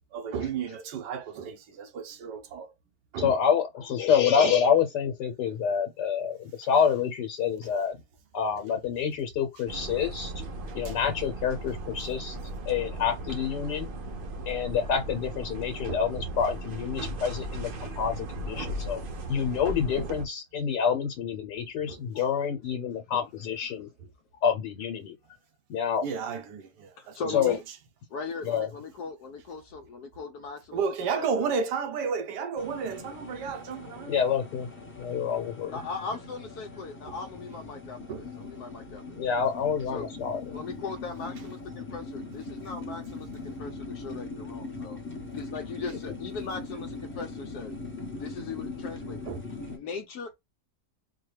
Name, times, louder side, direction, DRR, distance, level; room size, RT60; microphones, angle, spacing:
voice 1, 0.1-2.7 3.1-3.4 4.4-4.5 10.8-11.0 15.9-16.0 17.1-17.2 18.7-18.8 20.0-20.1 21.9-22.0 23.1-23.2 26.0-27.4 30.7-34.2 37.0-37.1 38.1-38.2 49.3-49.4, right 6 dB, 85° right, 1.4 m, -33 dB
voice 2, 3.2-8.0 8.3-10.3 10.7-12.4 12.7-13.9 14.5-23.9 24.4-25.1 25.7-26.0 27.3-27.6 28.4-28.7 34.1-34.7 35.0-35.8 39.1-40.6, left 7 dB, 90° left, 1.4 m, -27 dB
sound 1, 9.7-20.3, right 1 dB, 65° right, 0.5 m, -37 dB
voice 3, 27.0-27.6 28.1-30.8 31.1-31.5 35.7-39.2 39.9-40.1 40.5-45.0 45.3-47.7 48.1-49.2 49.7-50.3, left 4 dB, 70° left, 1.1 m, -39 dB
sound 2, 32.6-49.8, left 3 dB, 10° left, 0.7 m, -41 dB
4.3 x 2.2 x 3.2 m
omnidirectional pair, 1.8 m